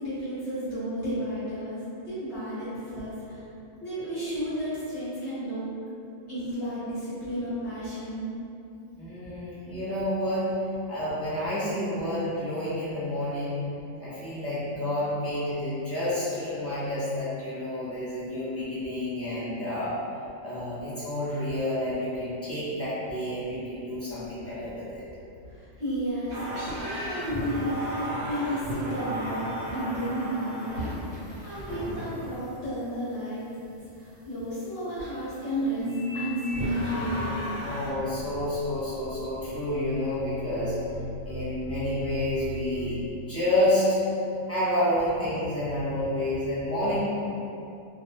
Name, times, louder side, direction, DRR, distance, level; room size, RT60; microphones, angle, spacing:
voice 1, 0.0-3.4 3.8-5.7 6.3-8.3 25.5-33.4 34.0-35.9 36.1-37.5, equal, 60° left, -12 dB, 1.2 m, -33 dB
voice 2, 9.0-10.5 10.9-13.6 14.0-19.9 20.4-25.0 37.6-40.7 41.2-43.0 43.3-44.0 44.5-47.0, left 1 dB, 15° left, -13 dB, 0.5 m, -29 dB
sound 1, 26.3-32.6 36.5-37.9, equal, 50° right, 0.9 m, -34 dB
sound 2, 35.8-37.5 38.2-43.1, equal, 75° right, 1.0 m, -34 dB
2.7 x 2.1 x 2.7 m, 2.7 s
omnidirectional pair, 1.3 m